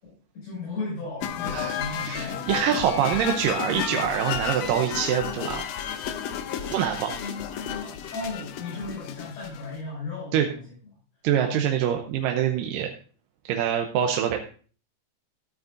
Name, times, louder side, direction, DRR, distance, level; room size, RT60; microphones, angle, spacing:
voice 1, 0.0-2.5 7.2-10.6 11.4-11.6, left 3 dB, 60° left, -5 dB, 7.4 m, -36 dB
sound 1, 1.2-9.8, left 9 dB, 85° left, 1.4 m, -32 dB
voice 2, 1.5-5.6 6.7-7.2 10.3-10.5 11.2-12.9 13.5-14.5, right 9 dB, 85° right, 4 dB, 2.4 m, -25 dB
13.0 x 9.5 x 2.6 m, 0.40 s
omnidirectional pair, 3.9 m